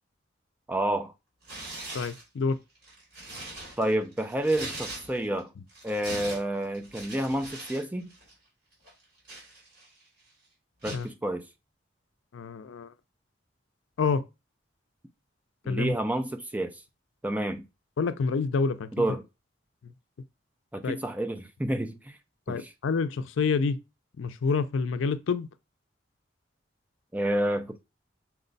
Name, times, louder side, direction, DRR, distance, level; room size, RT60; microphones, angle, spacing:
voice 1, 0.7-1.1 3.8-5.5 5.8-8.1 10.8-11.4 15.6-16.7 17.2-17.7 18.9-19.2 20.7-22.2 22.5-22.7 27.1-27.8, right 1 dB, 10° right, 0.4 m, -29 dB
Tearing, 1.4-2.2 2.8-5.4 5.7-7.8 8.1-8.3 8.9-10.0 10.8-11.1, right 2 dB, 55° right, 2.8 m, -41 dB
voice 2, 1.9-2.6 10.9-11.1 12.3-12.9 14.0-14.2 15.7-15.9 18.0-18.9 20.8-21.0 22.5-23.8 24.2-25.5, left 5 dB, 85° left, 0.4 m, -27 dB
5.9 x 2.2 x 3.9 m
head